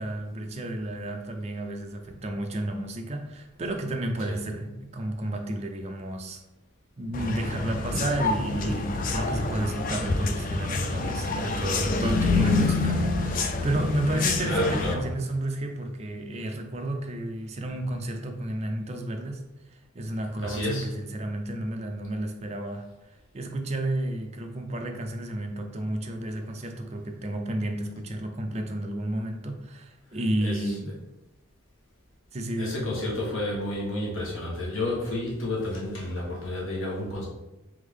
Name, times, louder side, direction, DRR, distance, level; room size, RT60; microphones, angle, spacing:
voice 1, 0.0-6.4 7.0-19.4 19.7-22.9 23.3-31.1 32.3-33.0, right 1 dB, 30° right, 4 dB, 0.5 m, -31 dB
sound 1, 7.1-14.9, left 3 dB, 40° left, 0.3 m, -27 dB
voice 2, 14.4-15.0 20.4-20.9 30.4-30.6 32.6-37.3, left 1 dB, 75° left, -5 dB, 1.3 m, -31 dB
3.5 x 3.5 x 3.6 m, 0.97 s
head